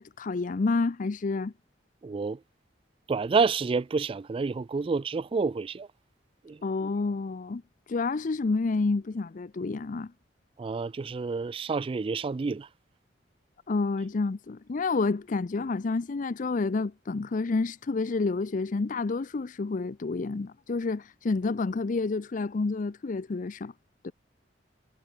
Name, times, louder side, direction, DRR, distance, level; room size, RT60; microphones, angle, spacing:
voice 1, 0.0-1.5 6.6-7.6 7.9-10.1 13.7-23.7 24.0-24.1, left 3 dB, 45° left, 0.5 m, -29 dB
voice 2, 2.0-2.4 3.1-5.9 6.4-6.6 10.6-12.7, right 4 dB, 30° right, 0.3 m, -29 dB
head